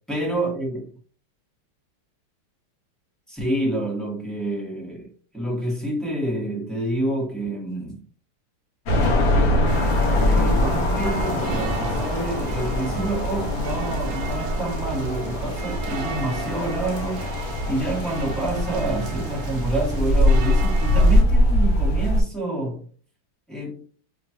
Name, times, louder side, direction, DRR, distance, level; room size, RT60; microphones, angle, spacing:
voice 1, 0.1-0.8 3.3-8.0 10.1-22.8 23.5-23.8, right 1 dB, ahead, 0.5 m, -28 dB
sound 1, 8.9-22.2, left 1 dB, 65° left, 1.7 m, -22 dB
sound 2, 9.7-21.2, right 5 dB, 85° right, 0.7 m, -37 dB
5.0 x 2.2 x 2.8 m
omnidirectional pair, 2.4 m